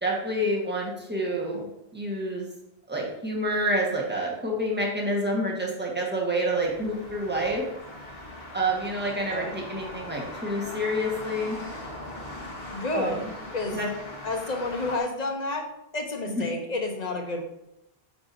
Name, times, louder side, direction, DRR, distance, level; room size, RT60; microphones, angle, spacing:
voice 1, 0.0-1.7 1.9-2.5 2.9-7.6 8.5-11.6 12.9-13.3 13.7-13.9 16.3-16.5, right 1 dB, 10° right, -2 dB, 1.5 m, -28 dB
sound 1, 6.4-15.0, left 1 dB, 65° left, 1.7 m, -40 dB
voice 2, 12.7-13.3 13.5-13.8 14.2-17.4, left 2 dB, 45° left, 3 dB, 1.1 m, -30 dB
8.2 x 5.9 x 2.7 m, 0.83 s
omnidirectional pair, 1.0 m